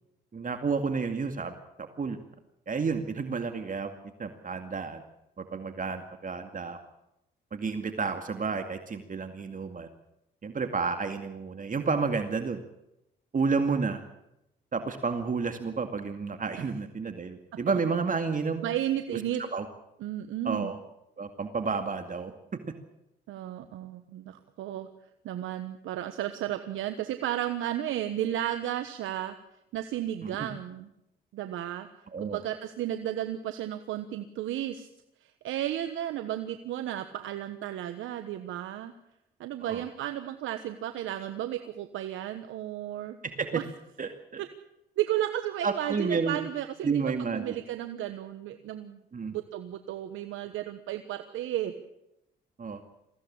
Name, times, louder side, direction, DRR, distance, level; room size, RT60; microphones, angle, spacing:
voice 1, 0.3-2.2 2.7-3.9 4.2-5.0 5.4-6.8 7.5-9.9 10.4-12.6 13.3-14.0 14.7-18.6 19.1-19.2 19.5-19.7 20.4-20.8 21.2-22.3 30.2-30.5 32.1-32.4 39.6-39.8 43.2-43.6 44.0-44.4 45.6-46.4 46.8-47.6 49.1-49.4 52.6-52.8, right 5 dB, 40° right, 7 dB, 2.3 m, -31 dB
voice 2, 18.6-19.4 20.0-20.7 23.3-24.9 25.2-29.3 29.7-30.9 31.3-31.9 32.2-34.9 35.4-38.9 39.4-43.2 43.5-43.6 44.4-44.5 45.0-49.0 49.3-51.7, right 12 dB, 80° right, 9 dB, 1.3 m, -33 dB
22.5 x 15.5 x 8.7 m, 0.85 s
supercardioid pair, 60°, 20 cm